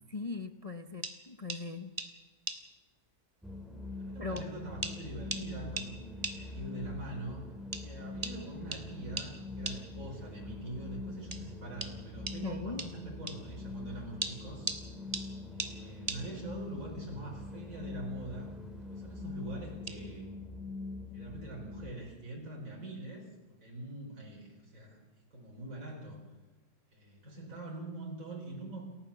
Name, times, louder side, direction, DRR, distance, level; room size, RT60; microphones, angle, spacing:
voice 1, 0.1-1.9 4.2-4.5 12.4-12.9, left 3 dB, 55° left, 8 dB, 0.4 m, -39 dB
sound 1, 1.0-1.2 1.5-1.6 2.0-2.1 2.5-2.6 3.6-3.7 4.4-4.5 4.8-5.0 5.3-5.5 5.8-5.9 6.2-6.4 7.7-7.8 8.2-8.4 8.7-8.8 9.2-9.3 9.6-9.8 11.3-11.4 11.8-11.9 12.3-12.4 12.8-12.9 13.3-13.4 14.2-14.8 15.1-15.3 15.6-15.7 16.1-16.2 17.9-18.1 18.4-18.7 19.9-20.0, right 2 dB, 20° right, 1.8 m, -37 dB
sound 2, 3.4-21.9, left 3 dB, ahead, 2.2 m, -43 dB
voice 2, 4.0-7.5 7.8-14.7 15.5-18.5 18.9-20.3 21.1-26.2 26.9-28.8, right 2 dB, 40° right, -3 dB, 5.0 m, -44 dB
28.5 x 14.5 x 7.2 m, 1.2 s
omnidirectional pair, 2.1 m